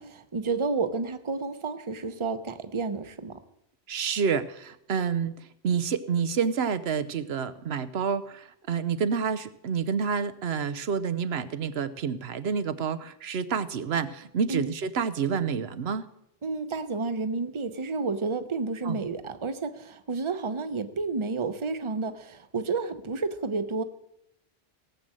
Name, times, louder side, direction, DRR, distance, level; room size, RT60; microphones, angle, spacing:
voice 1, 0.0-3.4 14.5-14.7 16.4-23.8, right 4 dB, 30° right, 10 dB, 0.9 m, -31 dB
voice 2, 3.9-5.3 5.6-16.0 18.8-19.0, right 6 dB, 75° right, 13 dB, 1.0 m, -28 dB
18.0 x 7.7 x 7.6 m, 0.78 s
omnidirectional pair, 1.1 m